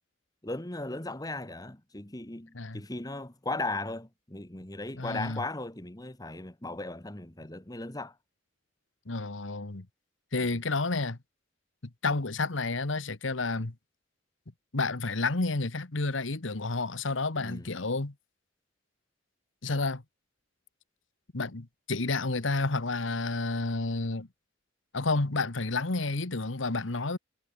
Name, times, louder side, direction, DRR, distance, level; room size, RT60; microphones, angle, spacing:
voice 1, 0.4-8.1 17.4-17.7, left 2 dB, 20° left, 1.6 m, -37 dB
voice 2, 5.0-5.4 9.1-9.9 10.3-11.2 12.0-13.7 14.7-18.1 19.6-20.0 21.3-24.3 24.9-27.2, left 3 dB, 80° left, 1.5 m, -30 dB
head